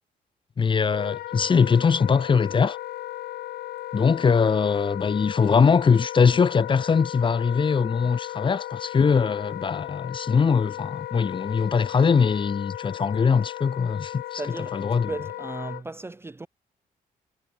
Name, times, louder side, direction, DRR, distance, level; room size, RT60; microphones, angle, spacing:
voice 1, 0.6-2.8 3.9-14.4 14.7-15.1, left 5 dB, 30° left, 0.7 m, -22 dB
Wind instrument woodwind instrument, 0.8-15.8, left 14 dB, 85° left, 0.7 m, -36 dB
voice 2, 14.4-16.5, right 2 dB, 15° right, 0.5 m, -36 dB
cardioid pair, 105°, 16 cm